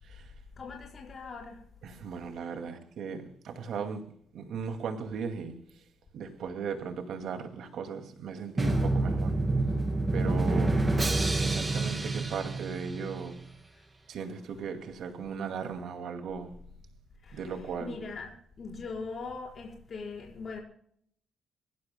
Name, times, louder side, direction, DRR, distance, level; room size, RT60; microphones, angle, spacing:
voice 1, 0.6-1.6 10.2-10.7 17.2-18.3 18.6-20.6, left 4 dB, 40° left, 4.7 m, -41 dB
voice 2, 1.8-4.0 4.3-5.5 6.1-9.3 10.1-10.8 11.4-13.4 14.1-16.5 17.3-17.9, right 6 dB, 70° right, 2.2 m, -37 dB
Drum, 8.6-13.4, right 2 dB, 20° right, 2.4 m, -28 dB
25.5 x 16.0 x 2.2 m
cardioid pair, 140°, 0 cm